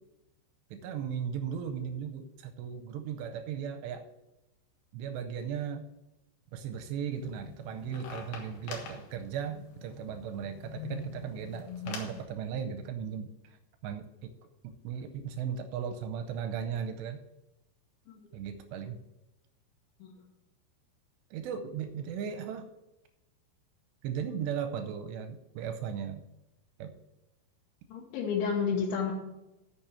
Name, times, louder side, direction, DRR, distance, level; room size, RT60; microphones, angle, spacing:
voice 1, 0.7-4.1 4.9-5.9 6.5-13.6 13.8-14.3 14.6-17.2 18.3-19.0 21.3-22.7 24.0-26.2 26.8-26.9, right 7 dB, 80° right, 9 dB, 2.7 m, -37 dB
sound 1, 7.1-12.2, left 6 dB, 65° left, 3.2 m, -44 dB
voice 2, 27.9-29.1, left 6 dB, 90° left, -3 dB, 3.7 m, -30 dB
8.9 x 6.9 x 7.6 m, 0.96 s
omnidirectional pair, 5.2 m